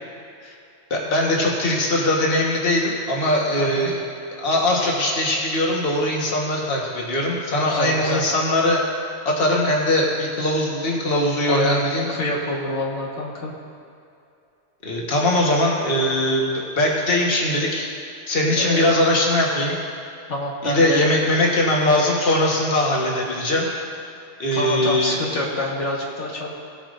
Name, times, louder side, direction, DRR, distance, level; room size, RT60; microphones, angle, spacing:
voice 1, 0.9-4.0 4.4-8.8 9.2-12.1 14.8-16.5 16.8-17.9 18.3-19.8 20.6-23.7 24.4-25.1, left 1 dB, 50° left, -3 dB, 1.6 m, -21 dB
voice 2, 3.6-3.9 7.6-8.2 11.5-11.8 12.1-13.5 18.5-19.0 20.3-21.0 21.9-22.0 24.5-26.5, left 1 dB, 80° left, -3 dB, 1.8 m, -27 dB
18.5 x 8.9 x 2.6 m, 2.5 s
omnidirectional pair, 1.2 m